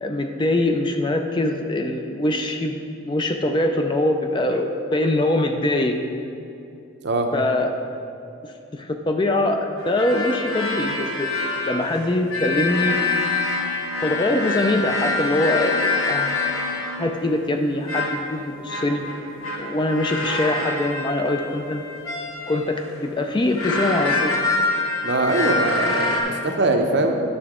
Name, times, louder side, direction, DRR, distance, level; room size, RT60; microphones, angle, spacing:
voice 1, 0.0-2.8 3.0-6.0 7.3-7.7 8.4-11.3 11.6-13.0 14.0-16.4 17.0-19.1 19.6-21.8 22.5-24.4, left 1 dB, 20° left, 4 dB, 0.4 m, -23 dB
sound 1, 9.8-17.1 17.9-18.3 18.7-22.8 23.4-26.2, left 3 dB, 75° left, 1.3 m, -25 dB
voice 2, 25.0-27.2, right 2 dB, 55° right, 3 dB, 0.7 m, -22 dB
9.7 x 6.7 x 3.6 m, 2.7 s
head